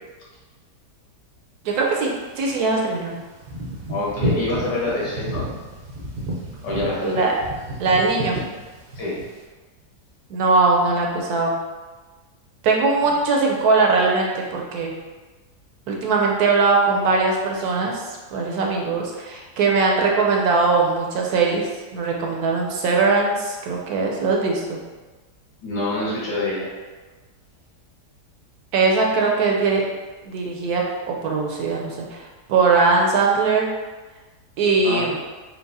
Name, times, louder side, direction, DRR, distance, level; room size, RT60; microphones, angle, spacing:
voice 1, 1.6-3.2 7.0-7.3 7.8-8.4 10.3-11.6 12.6-14.9 15.9-24.8 28.7-29.8 30.2-33.7 34.6-35.2, right 4 dB, 70° right, 0 dB, 1.0 m, -20 dB
sound 1, 2.7-2.8 3.2-9.2, right 1 dB, 55° right, 0.6 m, -30 dB
voice 2, 3.9-5.5 6.6-7.3 9.0-9.1 25.6-26.7 34.8-35.1, left 2 dB, 85° left, -6 dB, 1.9 m, -26 dB
4.6 x 2.1 x 3.9 m, 1.3 s
omnidirectional pair, 1.8 m